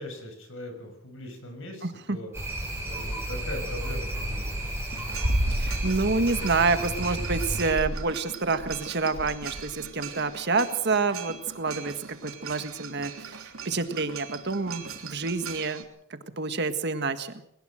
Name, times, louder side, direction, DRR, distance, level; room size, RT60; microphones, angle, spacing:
voice 1, 0.0-2.3 2.8-4.5, left 1 dB, 65° left, 5 dB, 6.7 m, -40 dB
voice 2, 1.8-2.2 5.5-11.9 12.2-15.8 16.1-17.3, right 4 dB, 55° right, 9 dB, 1.7 m, -28 dB
sound 1, 2.3-7.7, right 1 dB, 10° right, 7.3 m, -32 dB
sound 2, 4.9-15.8, right 2 dB, 80° right, 3.2 m, -36 dB
21.5 x 19.0 x 6.4 m, 0.73 s
head